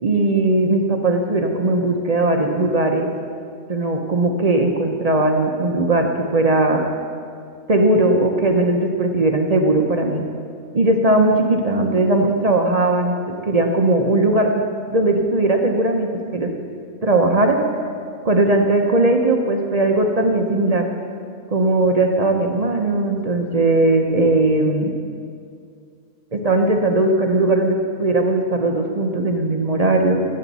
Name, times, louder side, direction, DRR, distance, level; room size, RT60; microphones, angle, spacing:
voice 1, 0.0-3.1 3.7-6.1 6.3-6.8 7.7-10.2 10.7-14.5 14.9-16.5 17.0-17.6 18.2-20.8 21.5-24.9 26.3-30.3, right 2 dB, 45° right, 3 dB, 0.5 m, -18 dB
17.5 x 7.8 x 4.1 m, 2.2 s
omnidirectional pair, 1.7 m